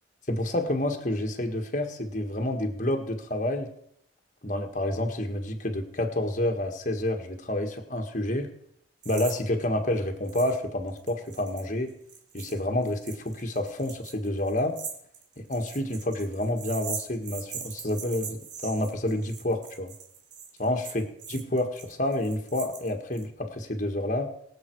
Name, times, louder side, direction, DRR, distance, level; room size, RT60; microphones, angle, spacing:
voice 1, 0.3-3.7 4.4-8.5 9.0-11.9 12.3-14.8 15.4-19.9 20.6-21.0 21.3-24.3, left 1 dB, 40° left, 4 dB, 1.7 m, -29 dB
sound 1, 9.0-9.4 9.6-9.7 10.3-10.6 10.9-23.2, right 7 dB, 70° right, 2.4 m, -41 dB
22.5 x 7.7 x 4.7 m, 0.71 s
head